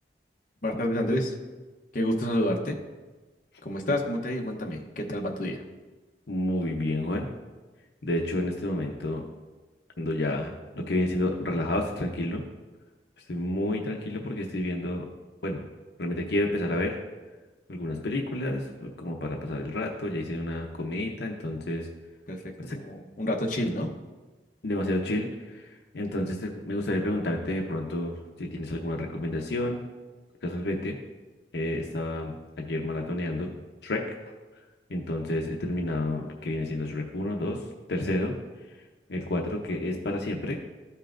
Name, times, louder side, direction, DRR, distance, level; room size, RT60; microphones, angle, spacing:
voice 1, 0.6-1.4 1.9-2.8 3.6-5.6 22.3-23.9, left 1 dB, 50° left, 2 dB, 0.9 m, -29 dB
voice 2, 6.3-7.3 8.0-9.2 10.0-12.4 13.3-15.1 15.4-15.6 16.0-17.0 17.7-21.9 22.6-22.8 24.6-29.8 30.4-31.0 31.5-33.5 33.8-34.0 34.9-37.6 37.9-38.3 39.1-40.6, left 1 dB, 70° left, 2 dB, 0.7 m, -30 dB
13.5 x 5.5 x 2.5 m, 1.3 s
head